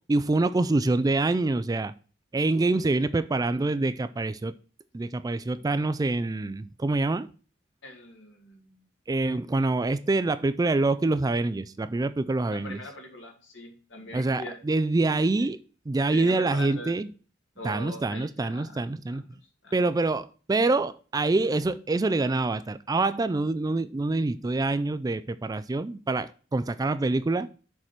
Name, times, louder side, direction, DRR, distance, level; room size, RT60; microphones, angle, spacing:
voice 1, 0.1-1.9 2.3-4.5 4.9-7.3 9.1-12.8 14.1-15.6 15.9-17.1 17.6-19.2 19.7-27.5, right 2 dB, 20° right, 0.3 m, -26 dB
voice 2, 7.8-8.8 12.5-14.6 15.4-15.5 16.1-16.9 17.6-19.9, left 1 dB, 70° left, 2.4 m, -42 dB
6.6 x 4.7 x 5.7 m
head